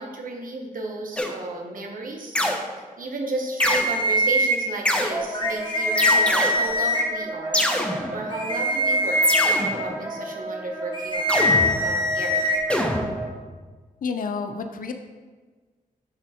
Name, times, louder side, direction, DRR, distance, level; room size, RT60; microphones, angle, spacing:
voice 1, 0.0-2.4 3.0-7.7 8.1-12.6, right 2 dB, 70° right, 1 dB, 1.2 m, -33 dB
sound 1, 1.2-1.6 2.3-2.9 3.6-3.9 4.8-5.4 6.0-6.8 7.5-8.5 9.2-10.1 11.3-12.2 12.7-13.6, left 1 dB, 5° left, 0.8 m, -25 dB
sound 2, 3.6-4.6 5.3-7.0 8.3-9.6 10.9-12.6, left 1 dB, 30° left, 1.3 m, -22 dB
Wind instrument woodwind instrument, 5.1-13.3, right 2 dB, 15° right, 1.5 m, -34 dB
voice 2, 14.0-14.9, left 5 dB, 70° left, 6 dB, 0.6 m, -29 dB
10.5 x 3.5 x 4.3 m, 1.4 s
cardioid pair, 70°, 15 cm